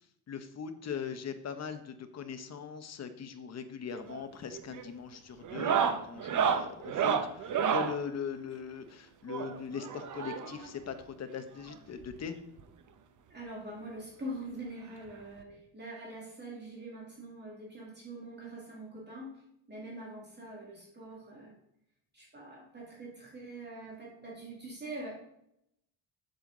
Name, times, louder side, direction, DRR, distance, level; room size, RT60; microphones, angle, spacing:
voice 1, 0.3-12.4, left 7 dB, 35° left, 9 dB, 0.8 m, -40 dB
sound 1, 3.9-4.3 4.5-4.9 5.4-8.0 9.3-10.7 11.7-11.8 12.0-12.1 12.6-12.7 14.0-14.1 15.4-15.5, right 7 dB, 40° right, 0.8 m, -30 dB
voice 2, 13.3-19.3 19.7-21.6 22.1-25.1, right 1 dB, 20° right, -4 dB, 2.2 m, -44 dB
7.9 x 7.0 x 3.8 m, 0.77 s
cardioid pair, 140°, 47 cm